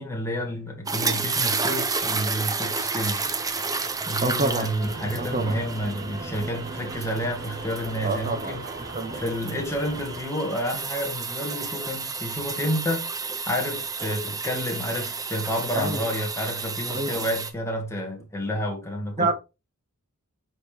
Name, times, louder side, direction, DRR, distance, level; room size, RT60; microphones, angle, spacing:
voice 1, 0.0-3.2 4.0-8.6 9.1-13.1 13.5-19.3, equal, 15° left, 1.8 m, -30 dB
sound 1, 0.9-17.5, right 4 dB, 15° right, 0.6 m, -31 dB
voice 2, 4.2-4.7 5.2-5.6 8.0-8.5 8.9-9.2 15.7-16.1 16.9-17.2 19.2-19.3, right 2 dB, 35° right, 0.9 m, -27 dB
sound 2, 4.8-10.2, right 3 dB, 50° right, 1.3 m, -38 dB
9.3 x 4.2 x 3.3 m
head